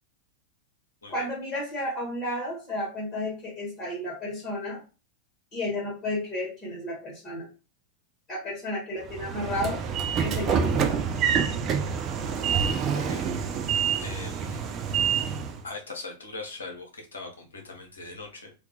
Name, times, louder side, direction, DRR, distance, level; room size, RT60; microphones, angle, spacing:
voice 1, 1.1-4.8 5.5-7.5 8.3-9.8 10.2-11.0, left 1 dB, 25° left, -3 dB, 1.1 m, -32 dB
Train / Sliding door, 9.1-15.6, right 7 dB, 30° right, 0.3 m, -27 dB
voice 2, 12.9-13.3 14.0-14.6 15.6-18.5, left 3 dB, 70° left, 1 dB, 0.7 m, -40 dB
2.3 x 2.3 x 2.8 m, 0.32 s
figure-of-eight pair, 90°, 0 cm